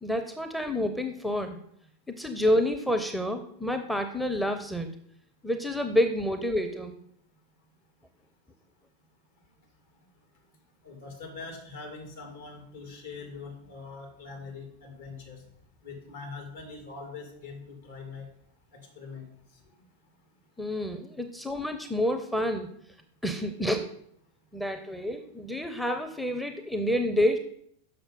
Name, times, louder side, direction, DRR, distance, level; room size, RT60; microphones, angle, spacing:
voice 1, 0.0-1.6 2.2-4.9 5.4-6.9 20.6-22.7 23.2-23.9 24.5-27.4, left 1 dB, ahead, 7 dB, 0.6 m, -28 dB
voice 2, 10.8-15.4 15.8-18.3 18.7-19.3, left 4 dB, 65° left, 2 dB, 2.6 m, -43 dB
6.5 x 6.1 x 5.3 m, 0.67 s
figure-of-eight pair, 90°, 0 cm